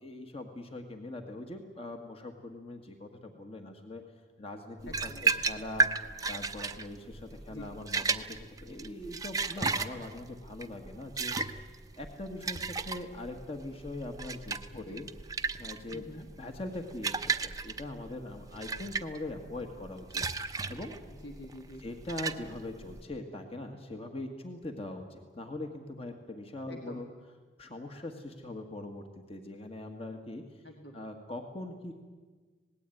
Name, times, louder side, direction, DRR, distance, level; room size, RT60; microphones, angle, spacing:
voice 1, 0.0-4.0 4.4-5.9 6.3-11.3 12.0-15.1 15.6-20.9 21.8-27.1 27.6-30.4 30.9-32.0, left 2 dB, 35° left, 4 dB, 1.8 m, -42 dB
sound 1, 4.8-23.0, right 4 dB, 20° right, 0.8 m, -34 dB
voice 2, 4.9-5.4 7.5-7.7 14.7-15.0 15.9-16.3 21.1-21.8 26.7-27.0 30.6-31.0, left 1 dB, 65° left, 3 dB, 1.9 m, -47 dB
26.0 x 19.0 x 9.3 m, 1.4 s
head